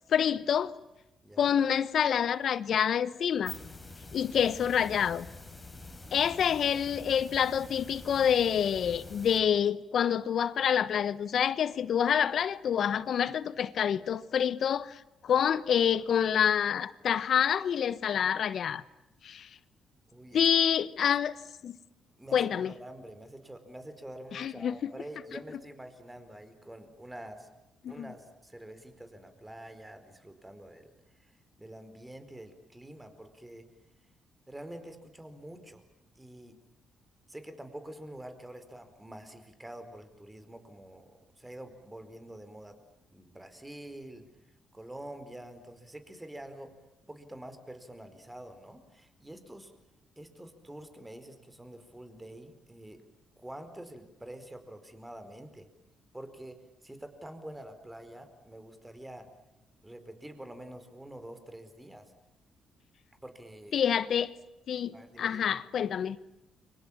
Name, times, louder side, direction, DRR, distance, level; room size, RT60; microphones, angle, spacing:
voice 1, 0.1-0.7 1.4-3.5 4.1-5.3 6.1-18.8 19.2-19.5 20.3-21.3 21.6-21.7 22.3-22.7 24.3-24.7 27.8-28.1 63.7-64.3 64.7-66.2, left 8 dB, 60° left, 1.2 m, -27 dB
voice 2, 1.2-1.5 20.1-20.5 22.2-27.5 27.9-30.9 31.2-33.7 34.5-35.8 36.1-36.6 37.3-42.8 43.1-44.2 44.7-46.7 47.1-49.7 50.2-53.0 53.4-55.7 56.1-59.3 59.8-62.1 63.2-63.8 64.9-65.4, right 1 dB, 10° right, 4.6 m, -47 dB
sound 1, 3.2-9.4, left 3 dB, 15° left, 4.9 m, -46 dB
30.0 x 24.5 x 7.4 m
cardioid pair, 90°, 0 cm